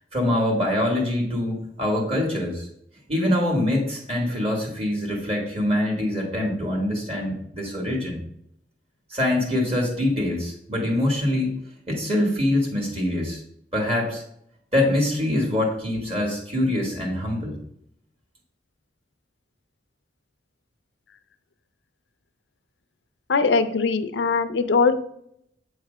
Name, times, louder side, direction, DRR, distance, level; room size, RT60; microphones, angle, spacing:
voice 1, 0.1-2.7 3.1-8.2 9.1-11.5 11.9-13.4 13.7-14.2 14.7-17.6, left 1 dB, 35° right, -1 dB, 1.6 m, -24 dB
voice 2, 23.3-24.9, left 4 dB, 85° left, 10 dB, 0.5 m, -21 dB
8.0 x 3.2 x 4.9 m, 0.73 s
head